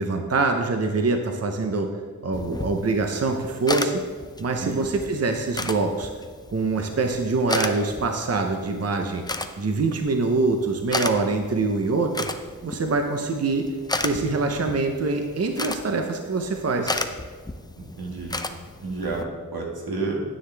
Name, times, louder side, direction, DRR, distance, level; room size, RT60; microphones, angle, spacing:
voice 1, 0.0-1.9 2.2-4.0 4.4-6.1 6.5-9.2 9.6-12.3 12.6-13.7 14.0-17.0, right 3 dB, 45° right, 4 dB, 0.8 m, -24 dB
sound 1, 2.3-19.2, left 2 dB, 10° left, 0.5 m, -34 dB
voice 2, 17.8-18.4 18.8-19.2 19.5-20.2, right 3 dB, 90° right, -2 dB, 1.8 m, -30 dB
9.9 x 9.4 x 3.4 m, 1.6 s
wide cardioid pair, 110°, 36 cm